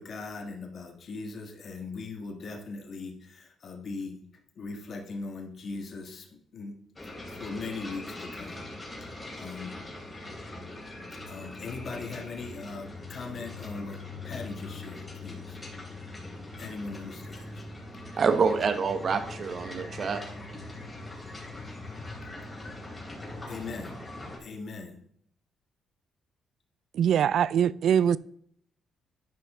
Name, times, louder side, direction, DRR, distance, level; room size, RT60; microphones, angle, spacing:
voice 1, 0.0-4.2 4.6-6.3 6.5-6.8 7.3-8.7 9.0-9.8 11.3-15.6 16.6-17.7 23.5-24.0 24.4-25.0, left 4 dB, 50° left, 1.5 m, -39 dB
sound 1, 7.0-24.4, left 2 dB, 20° left, 3.3 m, -41 dB
voice 2, 18.2-20.2, right 5 dB, 50° right, 1.1 m, -26 dB
voice 3, 26.9-28.2, right 8 dB, 70° right, 0.3 m, -23 dB
12.0 x 5.3 x 3.7 m
cardioid pair, 90°, 0 cm